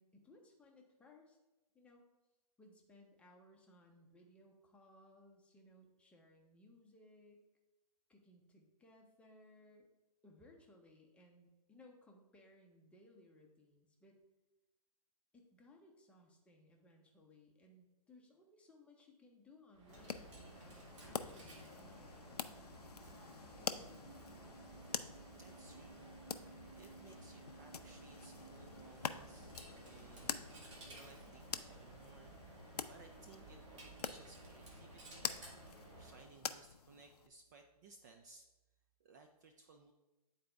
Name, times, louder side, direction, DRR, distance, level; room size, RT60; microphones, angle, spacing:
voice 1, 0.0-1.4 1.7-2.0 2.6-7.4 8.1-9.9 10.2-14.2 15.3-22.4, left 1 dB, 5° left, 1 dB, 0.7 m, -63 dB
Coin (dropping), 19.7-36.4, right 2 dB, 50° right, 1.7 m, -55 dB
sound 1, 19.9-37.3, left 7 dB, 80° left, 0.5 m, -47 dB
voice 2, 25.4-35.4 36.0-38.5 39.0-39.9, right 4 dB, 30° right, 5 dB, 0.4 m, -62 dB
9.3 x 4.1 x 3.4 m, 1.1 s
hypercardioid pair, 140°, 20 cm